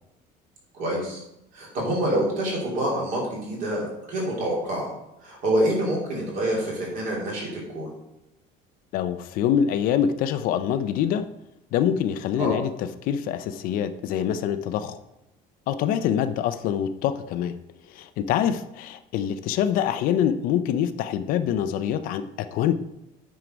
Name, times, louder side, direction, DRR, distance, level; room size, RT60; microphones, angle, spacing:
voice 1, 0.7-1.2 1.5-4.9 5.2-7.9 12.4-12.5, right 1 dB, 45° right, -3 dB, 3.1 m, -26 dB
voice 2, 8.9-11.2 11.7-15.0 15.7-17.6 17.9-22.8, left 9 dB, 50° left, 12 dB, 0.5 m, -25 dB
9.1 x 4.7 x 5.1 m, 0.87 s
cardioid pair, 180°, 18 cm